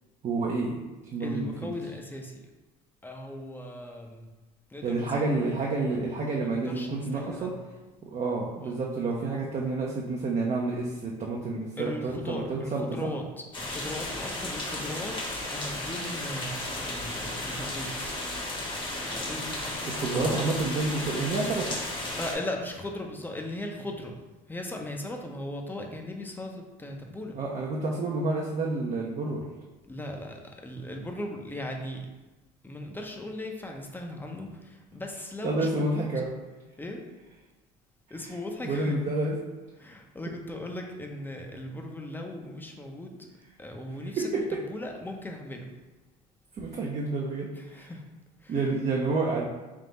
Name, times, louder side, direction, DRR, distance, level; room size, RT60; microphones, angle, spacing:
voice 1, 0.2-0.8 1.1-1.7 4.8-7.5 8.0-13.1 19.9-21.8 27.3-29.5 35.4-36.3 38.6-39.4 44.2-44.6 46.6-47.9 48.5-49.5, right 3 dB, 35° right, -2 dB, 0.7 m, -29 dB
voice 2, 1.2-2.4 3.0-4.3 4.7-5.3 6.4-7.7 8.6-8.8 11.8-18.1 19.0-20.3 22.2-24.1 24.5-27.3 29.9-32.1 32.6-36.1 36.8-37.0 38.1-38.9 39.8-43.3 43.6-45.7 47.6-48.0 48.4-48.6, left 1 dB, 10° left, 2 dB, 0.7 m, -38 dB
sound 1, 13.5-22.3, left 1 dB, 25° left, 1.1 m, -34 dB
3.6 x 2.8 x 4.0 m, 1.1 s
supercardioid pair, 85°, 19 cm